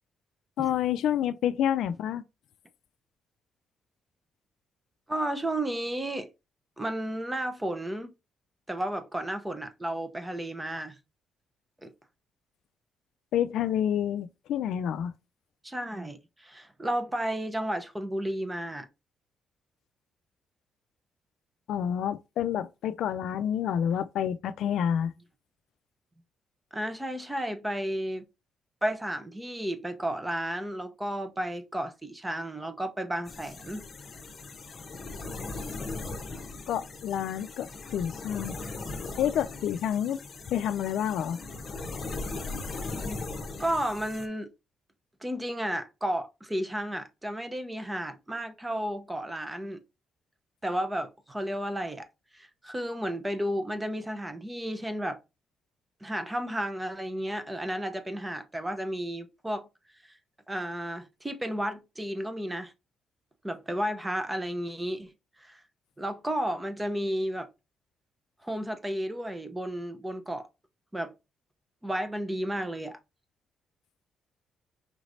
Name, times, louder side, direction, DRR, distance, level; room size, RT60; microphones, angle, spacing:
voice 1, 0.6-2.2 13.3-15.1 21.7-25.1 36.7-38.6 39.2-40.2 40.5-41.4, left 9 dB, 75° left, 0.3 m, -28 dB
voice 2, 5.1-6.3 6.8-8.1 8.7-11.0 11.8-11.9 15.6-18.9 26.7-28.3 28.8-33.9 43.6-44.5 45.2-49.8 50.6-52.1 52.3-55.2 56.0-59.7 60.1-60.2 60.5-62.7 63.4-65.1 65.4-65.6 66.0-67.5 68.4-70.5 70.9-71.1 71.8-73.0, right 1 dB, 15° right, 0.7 m, -32 dB
sound 1, 33.3-44.3, left 3 dB, 40° left, 1.0 m, -39 dB
5.0 x 3.1 x 2.6 m
cardioid pair, 90°, 0 cm